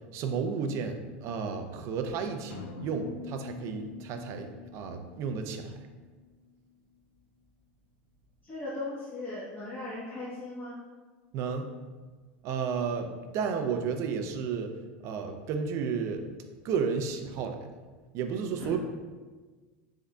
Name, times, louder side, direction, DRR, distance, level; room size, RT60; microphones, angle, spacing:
voice 1, 0.1-5.8 11.3-11.7 12.4-14.7 15.0-16.3 16.6-17.7 18.1-18.8, right 6 dB, 55° right, 6 dB, 0.4 m, -32 dB
sound 1, 2.5-6.3, left 3 dB, 90° left, 0.4 m, -45 dB
voice 2, 8.4-10.8 18.6-18.8, left 2 dB, 30° left, -10 dB, 1.0 m, -38 dB
3.6 x 3.6 x 2.2 m, 1.3 s
supercardioid pair, 110°, 6 cm